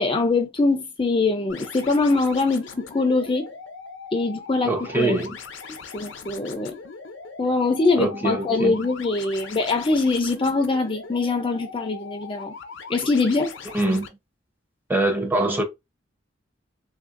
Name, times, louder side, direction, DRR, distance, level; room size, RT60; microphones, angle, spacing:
voice 1, 0.0-3.5 4.1-5.1 5.9-6.7 7.4-12.5 12.9-13.5, left 3 dB, 25° left, 0.5 m, -23 dB
sound 1, 1.5-14.1, left 5 dB, 75° left, 0.6 m, -40 dB
voice 2, 4.6-5.3 8.0-8.7 13.7-14.1 14.9-15.6, right 2 dB, 10° right, 0.7 m, -23 dB
3.4 x 2.6 x 2.5 m
head